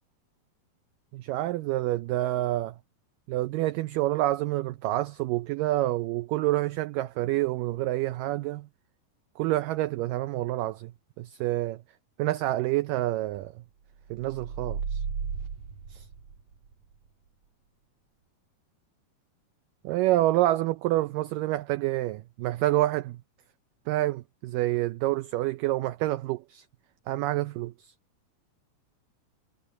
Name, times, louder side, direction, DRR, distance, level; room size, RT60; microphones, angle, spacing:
voice 1, 1.1-2.8 3.3-8.7 9.4-10.9 11.2-11.8 12.2-13.5 14.1-15.0 15.9-16.1 19.8-23.2 23.9-26.7 27.1-27.9, right 16 dB, 85° right, 1.9 m, -28 dB
sound 1, 14.1-16.7, right 6 dB, 50° right, 3.6 m, -34 dB
omnidirectional pair, 4.5 m